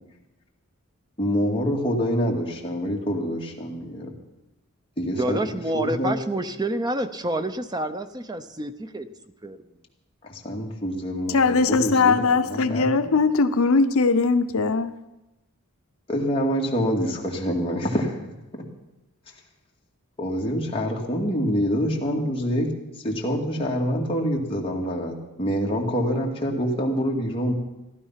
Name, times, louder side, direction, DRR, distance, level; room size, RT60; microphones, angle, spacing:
voice 1, 1.2-4.1 5.0-5.4 5.7-6.2 10.2-12.9 16.1-18.2 20.2-22.7 23.0-27.5, equal, 25° left, 2.2 m, -26 dB
voice 2, 5.2-9.1 9.4-9.6, right 1 dB, 20° right, 0.6 m, -28 dB
voice 3, 11.3-14.9, left 4 dB, 65° left, 0.7 m, -20 dB
15.0 x 12.0 x 5.7 m
head